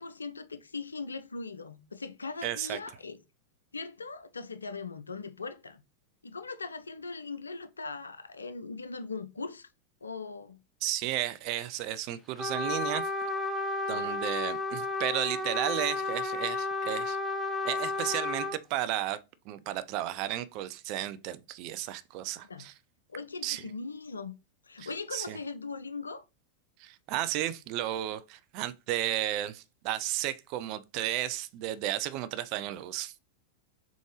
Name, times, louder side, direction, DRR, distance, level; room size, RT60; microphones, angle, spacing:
voice 1, 0.0-3.2 3.7-5.8 6.2-9.7 10.0-10.6 13.9-14.2 22.4-22.7 23.1-24.3 24.6-26.2, left 4 dB, 75° left, 0.4 m, -40 dB
voice 2, 2.4-2.8 10.8-13.1 13.9-17.2 17.6-19.2 19.5-22.7 23.4-23.6 24.8-25.4 26.8-33.1, right 13 dB, 45° right, 0.4 m, -33 dB
Trumpet, 12.4-18.6, left 3 dB, 5° left, 0.5 m, -32 dB
3.7 x 3.6 x 3.0 m
figure-of-eight pair, 90°, 0 cm